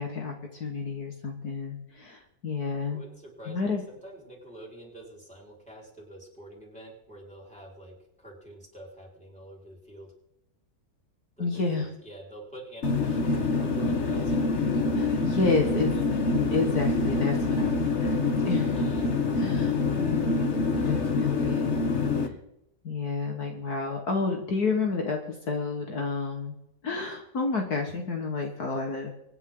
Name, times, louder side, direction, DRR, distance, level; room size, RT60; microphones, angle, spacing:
voice 1, 0.0-3.0 3.5-3.8 11.4-11.9 14.9-15.9 16.5-18.8 19.4-21.8 22.2-22.4 22.8-26.6 26.8-29.1, left 4 dB, 60° left, 2 dB, 2.2 m, -30 dB
voice 2, 2.9-10.1 11.4-14.3 15.1-15.7 18.7-19.1, right 1 dB, 5° left, -2 dB, 5.0 m, -47 dB
sound 1, 12.8-22.3, left 3 dB, 45° left, 1.5 m, -26 dB
25.5 x 10.0 x 3.9 m, 0.84 s
omnidirectional pair, 1.9 m